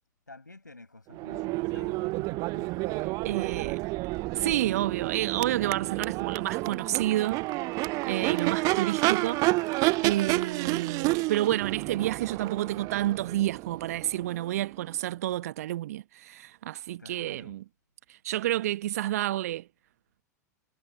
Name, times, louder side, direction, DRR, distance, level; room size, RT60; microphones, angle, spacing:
voice 1, 0.3-3.6 8.7-9.0 17.0-17.5, left 2 dB, 85° left, 5.8 m, -50 dB
Crowd / Race car auto racing / Accelerating revving vroom, 1.1-15.0, right 23 dB, 35° right, 0.5 m, -30 dB
voice 2, 3.2-3.8 4.3-7.5 8.1-17.6 18.1-19.7, right 14 dB, 55° right, 1.0 m, -30 dB
figure-of-eight pair, 90°, 10 cm